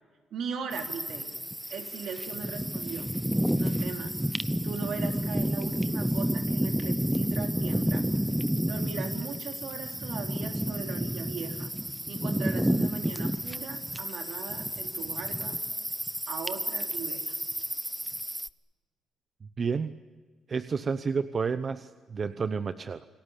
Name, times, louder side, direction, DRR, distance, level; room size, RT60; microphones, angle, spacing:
voice 1, 0.3-1.3 1.7-3.1 3.6-4.1 4.6-8.1 8.7-11.7 12.1-15.6 16.3-17.4, right 6 dB, 70° right, 3 dB, 3.9 m, -39 dB
sound 1, 0.7-18.5, equal, 5° right, 0.8 m, -30 dB
voice 2, 19.6-19.9 20.5-23.1, right 5 dB, 40° right, 11 dB, 0.9 m, -30 dB
29.0 x 19.5 x 8.4 m, 1.5 s
cardioid pair, 90°, 0 cm